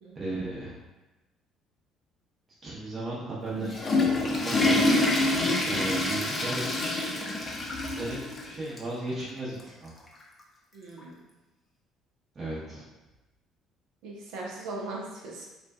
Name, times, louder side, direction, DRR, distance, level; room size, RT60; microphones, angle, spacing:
voice 1, 0.1-0.8 2.6-4.1 4.4-4.8 5.7-6.7 7.8-9.9 12.3-12.8, right 2 dB, 40° right, -7 dB, 0.8 m, -35 dB
Water / Toilet flush, 3.5-8.5 8.8-8.9 9.6-9.7 11.0-11.1, left 2 dB, 30° left, 0.5 m, -26 dB
voice 2, 10.7-11.1 14.0-15.5, right 2 dB, 70° right, -3 dB, 0.5 m, -39 dB
2.4 x 2.3 x 2.3 m, 1.1 s
hypercardioid pair, 55°, 0 cm